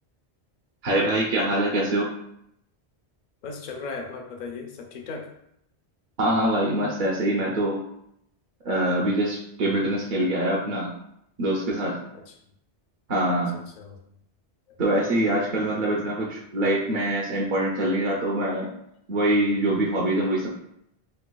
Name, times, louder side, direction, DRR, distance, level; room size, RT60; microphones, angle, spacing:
voice 1, 0.8-2.1 6.2-7.8 8.6-10.9 11.4-12.0 13.1-13.5 14.8-18.7 19.1-20.5, right 1 dB, 50° right, -4 dB, 0.7 m, -24 dB
voice 2, 3.4-5.3 12.1-12.3 13.5-14.0 14.7-14.8, left 4 dB, 55° left, 3 dB, 0.6 m, -37 dB
4.4 x 2.3 x 2.2 m, 0.74 s
omnidirectional pair, 1.1 m